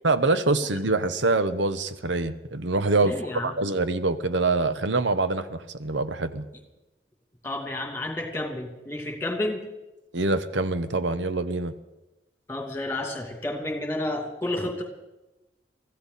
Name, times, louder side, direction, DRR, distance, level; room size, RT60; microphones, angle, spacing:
voice 1, 0.0-3.1 3.4-6.4 10.1-11.7, right 3 dB, 85° right, 11 dB, 1.0 m, -25 dB
voice 2, 3.0-3.5 7.4-9.6 12.5-14.8, left 1 dB, 15° left, 2 dB, 2.7 m, -31 dB
23.5 x 15.0 x 4.1 m, 1.0 s
head